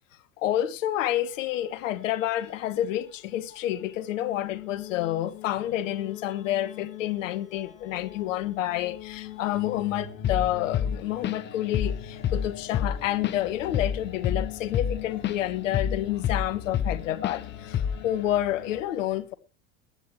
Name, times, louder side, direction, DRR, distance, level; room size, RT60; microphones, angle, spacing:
voice 1, 0.4-19.3, left 13 dB, 65° left, 1.5 m, -29 dB
sound 1, 0.9-18.8, left 10 dB, 50° left, 4.5 m, -42 dB
Drum kit / Drum, 10.2-10.5 10.7-11.5 11.7-12.0 12.2-15.4 15.7-17.0 17.2-17.4 17.7-18.1, left 8 dB, 25° left, 0.7 m, -27 dB
21.5 x 10.0 x 3.2 m
hypercardioid pair, 80°, 41 cm